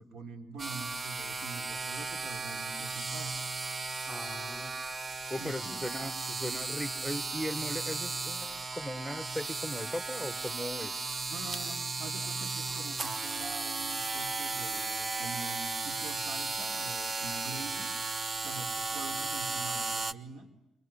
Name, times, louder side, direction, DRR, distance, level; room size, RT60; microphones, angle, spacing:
voice 1, 0.0-3.3 5.4-5.8 11.3-17.9 18.4-20.5, right 4 dB, 70° right, 6 dB, 3.3 m, -45 dB
sound 1, 0.6-20.1, right 3 dB, 35° right, 1.0 m, -35 dB
voice 2, 4.1-4.7 5.3-11.0 18.8-18.9, equal, 5° right, 11 dB, 1.4 m, -38 dB
24.5 x 22.5 x 9.9 m, 0.93 s
cardioid pair, 90°, 0 cm